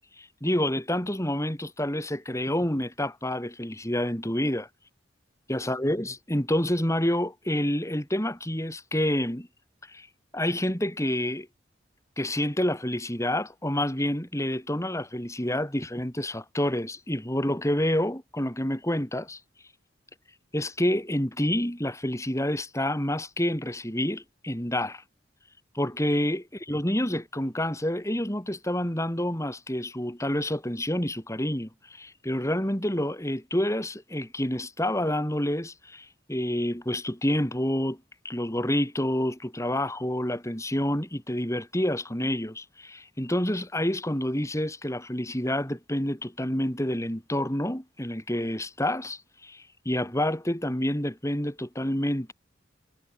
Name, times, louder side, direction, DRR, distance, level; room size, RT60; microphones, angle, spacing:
voice 1, 0.2-4.7 5.5-9.5 9.9-10.1 10.3-11.5 12.2-19.4 20.5-25.0 25.7-38.0 38.2-52.3, left 1 dB, 15° left, 4.9 m, -28 dB
head